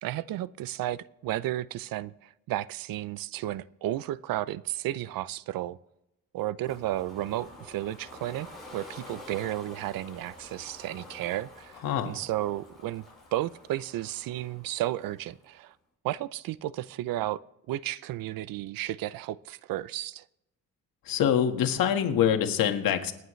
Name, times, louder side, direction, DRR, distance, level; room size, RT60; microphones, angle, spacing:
voice 1, 0.0-5.8 6.3-8.5 8.7-13.0 13.3-15.7 16.0-17.4 17.7-20.2, right 14 dB, 85° right, 0.6 m, -33 dB
Ocean, 6.6-15.5, left 1 dB, ahead, 6.2 m, -49 dB
voice 2, 11.8-12.2 21.0-23.1, left 9 dB, 80° left, 1.7 m, -25 dB
27.5 x 9.4 x 3.2 m
cardioid pair, 140°, 33 cm